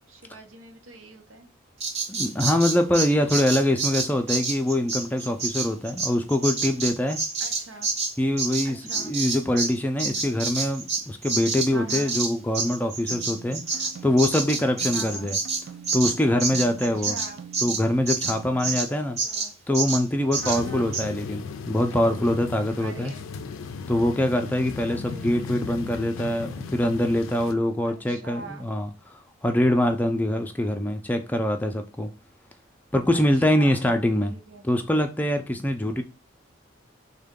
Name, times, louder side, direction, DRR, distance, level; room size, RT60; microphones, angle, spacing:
voice 1, 0.1-1.5 7.4-7.9 8.6-9.1 11.7-12.2 14.9-15.3 16.8-17.4 19.0-19.5 20.4-20.9 22.8-23.3 24.9-25.4 27.9-28.7 33.1-33.2 33.5-33.9 34.2-35.0 35.9-36.0, right 2 dB, 90° right, 0.8 m, -42 dB
Bird vocalization bird call bird song, 1.8-9.7 10.0-18.9 19.2-19.5 19.7-20.0 20.3-20.6 20.9-21.0, right 4 dB, 35° right, 0.6 m, -28 dB
voice 2, 2.1-7.2 8.2-15.4 15.9-17.2 17.6-19.2 19.7-23.1 23.9-32.1 32.9-34.3 34.6-36.0, left 1 dB, 10° left, 0.3 m, -24 dB
sound 1, 13.1-18.8, right 6 dB, 75° right, 0.4 m, -44 dB
sound 2, 20.3-27.5, left 5 dB, 85° left, 0.4 m, -36 dB
3.6 x 2.2 x 3.6 m
head